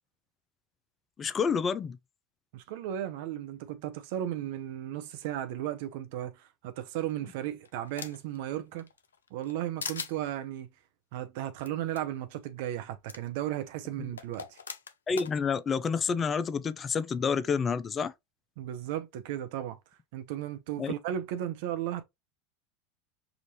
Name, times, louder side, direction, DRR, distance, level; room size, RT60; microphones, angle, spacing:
voice 1, 1.2-2.0 14.0-14.1 15.1-18.1 20.8-20.9, left 6 dB, 30° left, 0.5 m, -29 dB
voice 2, 2.5-8.9 9.3-10.7 11.1-14.6 18.6-19.8 20.1-22.0, right 12 dB, 65° right, 0.7 m, -35 dB
sound 1, 7.0-8.4 8.8-9.5 9.8-10.1 11.6-11.7 12.0-12.1 13.1-13.2 14.2-15.3, left 6 dB, 90° left, 0.4 m, -40 dB
5.0 x 2.6 x 3.0 m
hypercardioid pair, 90°, 0 cm